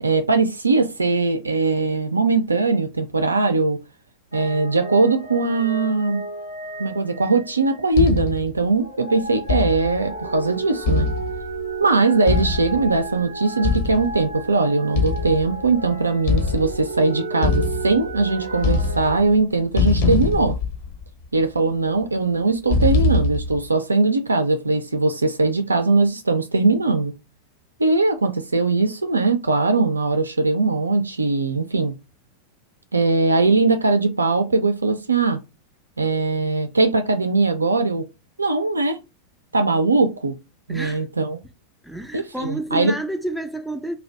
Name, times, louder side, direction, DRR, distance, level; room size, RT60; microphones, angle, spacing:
voice 1, 0.0-3.8 4.3-6.2 6.8-11.1 11.8-20.5 21.3-27.1 27.8-31.9 32.9-35.4 36.0-38.1 38.4-39.0 39.5-40.3 40.7-41.4 42.1-42.9, right 3 dB, 80° right, 0.4 m, -20 dB
sound 1, 4.3-8.1 8.7-19.3, right 3 dB, 85° left, 1.0 m, -33 dB
sound 2, 7.9-8.6 9.5-10.1 10.9-11.7 12.3-13.0 13.6-14.3 14.9-15.7 16.3-16.9 17.4-18.2 18.5-19.4 19.8-21.2 22.7-23.7, left 3 dB, 50° left, 0.7 m, -23 dB
voice 2, 40.7-41.0 41.8-44.0, right 1 dB, ahead, 0.3 m, -30 dB
2.6 x 2.2 x 3.3 m
figure-of-eight pair, 90°, 0 cm